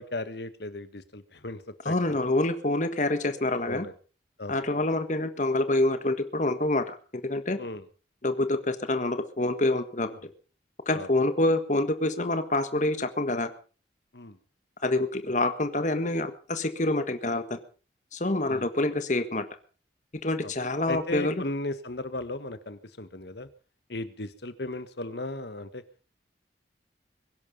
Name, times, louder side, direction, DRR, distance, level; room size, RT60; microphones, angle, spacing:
voice 1, 0.0-2.3 3.7-3.9 4.4-4.6 7.6-7.8 10.1-10.2 10.9-11.1 14.1-14.4 18.5-18.7 20.4-20.5 20.9-23.5 23.9-25.8, left 2 dB, 65° left, 12 dB, 1.5 m, -36 dB
voice 2, 1.8-3.9 4.5-7.6 8.2-10.1 10.8-13.5 14.8-17.6 18.1-19.4 20.2-21.4, left 2 dB, 40° left, 10 dB, 1.6 m, -26 dB
22.5 x 11.0 x 5.4 m, 0.38 s
head